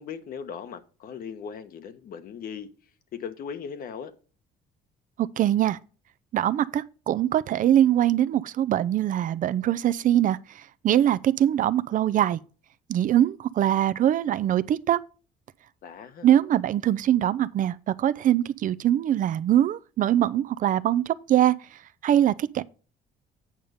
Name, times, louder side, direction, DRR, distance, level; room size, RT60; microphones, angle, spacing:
voice 1, 0.0-2.7 3.1-4.1 15.8-16.3, left 7 dB, 60° left, 1.2 m, -38 dB
voice 2, 5.4-5.8 6.3-12.4 12.9-15.0 16.2-21.6 22.0-22.6, right 11 dB, 50° right, 0.5 m, -22 dB
8.8 x 5.5 x 5.0 m
cardioid pair, 110°, 17 cm